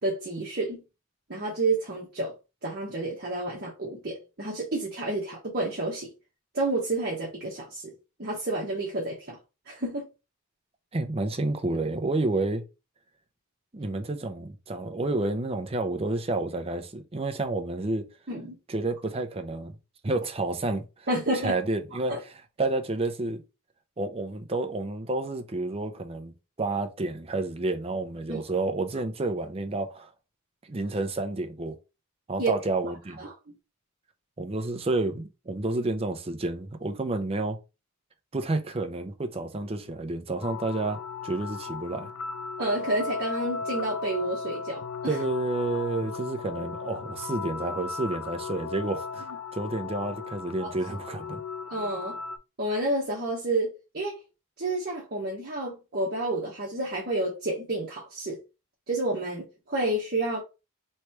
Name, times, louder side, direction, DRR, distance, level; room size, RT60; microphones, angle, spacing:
voice 1, 0.0-0.8 1.3-2.3 2.6-6.1 6.5-7.9 8.2-9.4 9.7-10.1 18.3-18.6 21.1-21.6 22.1-22.2 28.3-28.4 32.4-32.5 33.2-33.3 42.6-45.2 50.6-50.8 51.7-52.2 52.6-54.2 54.6-58.4 58.9-60.4, right 2 dB, 45° right, 1.1 m, -30 dB
voice 2, 10.9-12.6 13.7-18.1 18.7-19.7 20.0-21.1 21.4-22.1 22.6-23.4 24.0-26.3 26.6-30.1 30.6-31.8 32.3-33.2 34.4-37.6 38.3-42.1 45.1-51.4, right 2 dB, 25° right, 0.5 m, -30 dB
sound 1, 40.4-52.4, left 5 dB, 80° left, 0.5 m, -36 dB
3.2 x 3.1 x 4.4 m
head